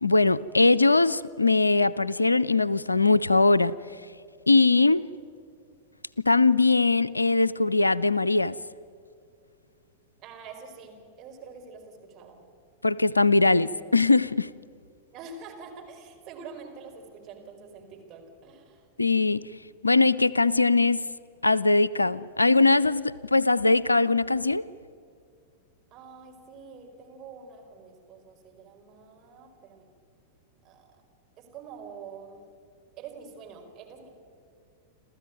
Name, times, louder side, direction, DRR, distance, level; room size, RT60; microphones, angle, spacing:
voice 1, 0.0-3.7 4.5-5.0 6.2-8.6 12.8-14.5 19.0-19.4 19.8-21.1 21.4-24.6, left 3 dB, 90° left, 20 dB, 0.5 m, -21 dB
voice 2, 10.2-12.4 15.1-18.9 25.9-29.9 30.6-30.9 31.4-32.4 33.0-34.1, right 5 dB, 40° right, 2 dB, 4.8 m, -46 dB
29.5 x 13.5 x 9.3 m, 2.3 s
figure-of-eight pair, 95°, 0 cm